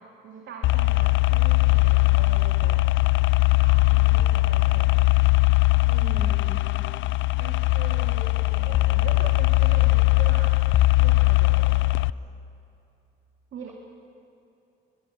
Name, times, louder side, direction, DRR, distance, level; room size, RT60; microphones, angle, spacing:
voice 1, 0.0-2.9 3.5-5.2 7.4-10.7 11.0-12.1 13.5-13.7, right 6 dB, 70° right, 1 dB, 2.2 m, -42 dB
sound 1, 0.6-12.1, left 21 dB, 75° left, 0.4 m, -20 dB
voice 2, 5.8-6.9, right 2 dB, 15° right, 0 dB, 5.7 m, -40 dB
22.0 x 22.0 x 5.8 m, 2.7 s
cardioid pair, 90°, 20 cm